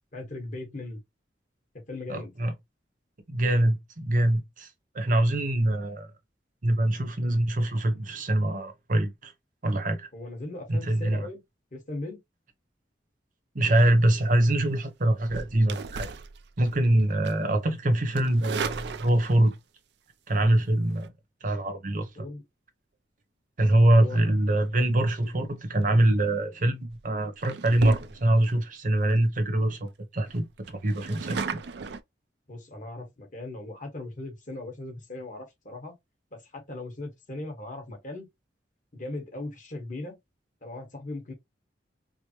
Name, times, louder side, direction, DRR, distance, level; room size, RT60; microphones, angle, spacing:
voice 1, 0.1-1.0 1.9-2.3 10.1-11.4 11.7-12.2 22.1-22.4 23.9-24.2 25.2-25.5 32.5-35.9 36.3-38.3 38.9-40.2 40.6-41.3, left 2 dB, 45° left, 1.4 m, -38 dB
voice 2, 2.1-2.5 3.3-4.7 4.9-6.1 6.6-9.3 9.6-10.1 10.7-11.3 13.5-16.1 16.6-19.5 20.3-21.1 21.4-22.1 23.6-31.4, right 1 dB, 50° right, 0.9 m, -24 dB
sound 1, 15.2-16.9 17.3-17.5 18.1-19.6 20.8-21.1 26.1-26.4 26.9-27.0 27.4-28.5 29.0-29.1 29.4-29.5 29.8-29.9 30.3-32.0, right 5 dB, 65° right, 0.4 m, -36 dB
4.9 x 2.1 x 2.9 m
head